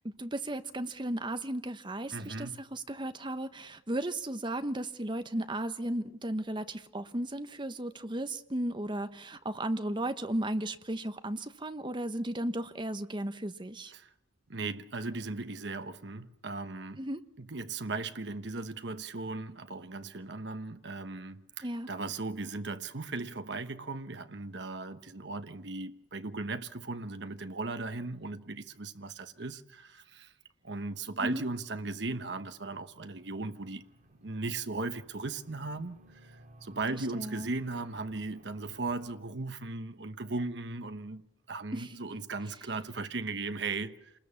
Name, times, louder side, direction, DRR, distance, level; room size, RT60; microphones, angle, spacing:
voice 1, 0.2-13.9 17.0-17.2 21.6-21.9 31.2-31.4 37.1-37.5 41.7-41.9, right 1 dB, 25° right, 1.1 m, -35 dB
voice 2, 2.1-2.6 13.9-14.1 14.5-17.0 17.4-30.3 30.6-33.8 34.2-41.2 41.5-44.1, right 3 dB, 60° right, 1.1 m, -37 dB
sound 1, 32.0-39.1, right 1 dB, 45° right, 5.4 m, -58 dB
27.5 x 20.5 x 7.1 m
head